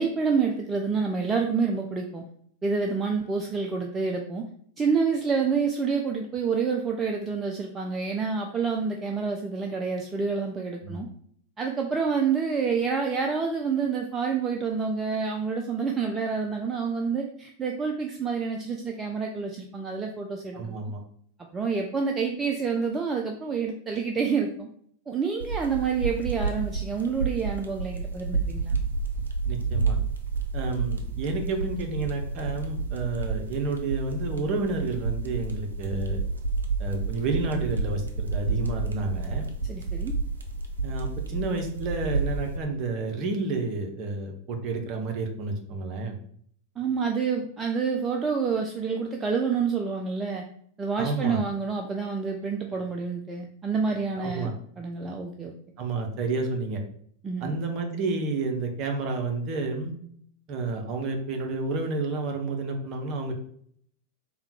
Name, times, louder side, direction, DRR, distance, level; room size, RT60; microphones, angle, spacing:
voice 1, 0.0-2.2 2.6-4.4 4.8-11.1 11.6-20.9 21.5-24.7 25.1-28.8 39.7-40.1 46.8-50.4 50.8-55.5 57.2-57.5, right 5 dB, 20° right, 2 dB, 0.4 m, -28 dB
voice 2, 20.5-21.0 29.5-30.0 30.5-36.2 36.8-39.5 40.8-46.2 51.0-51.4 54.2-54.5 55.8-56.8 57.4-59.9 60.5-63.3, right 3 dB, 35° right, 3 dB, 0.8 m, -30 dB
sound 1, 25.4-42.6, right 4 dB, 70° right, 0.5 m, -30 dB
3.6 x 2.3 x 4.3 m, 0.64 s
figure-of-eight pair, 90°, 0 cm